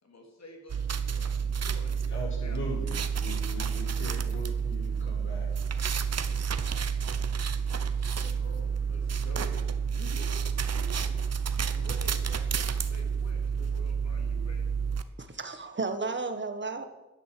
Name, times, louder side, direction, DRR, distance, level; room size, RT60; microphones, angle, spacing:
voice 1, 0.0-2.8 3.6-3.7 8.1-11.2 11.7-14.7, left 1 dB, 60° left, 1 dB, 3.6 m, -49 dB
sound 1, 0.7-15.0, right 6 dB, 55° right, 0.9 m, -30 dB
voice 2, 2.1-5.5, left 1 dB, 40° left, -1 dB, 5.5 m, -40 dB
voice 3, 15.2-16.8, right 4 dB, 40° right, 8 dB, 1.5 m, -33 dB
11.5 x 9.8 x 7.7 m, 1.0 s
wide cardioid pair, 105°, 30 cm